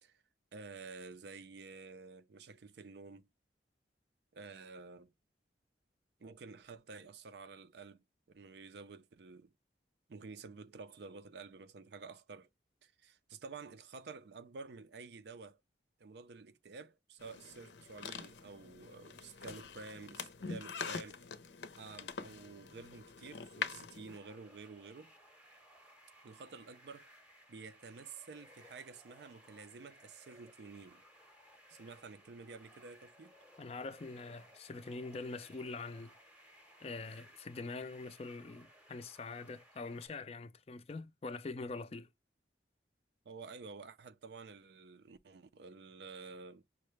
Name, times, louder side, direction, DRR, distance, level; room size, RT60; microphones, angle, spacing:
voice 1, 0.5-3.3 4.3-5.1 6.2-9.5 10.1-12.5 12.8-15.6 16.0-21.2 21.8-25.1 26.2-27.1 27.5-31.0 31.7-33.4 43.2-46.6, right 4 dB, 70° right, 0.4 m, -51 dB
sound 1, 17.2-24.2, left 5 dB, 85° left, 0.6 m, -45 dB
sound 2, 24.1-40.1, equal, 5° right, 0.7 m, -61 dB
voice 2, 33.6-36.1 36.8-42.1, left 3 dB, 35° left, 0.4 m, -44 dB
5.6 x 2.1 x 3.1 m
head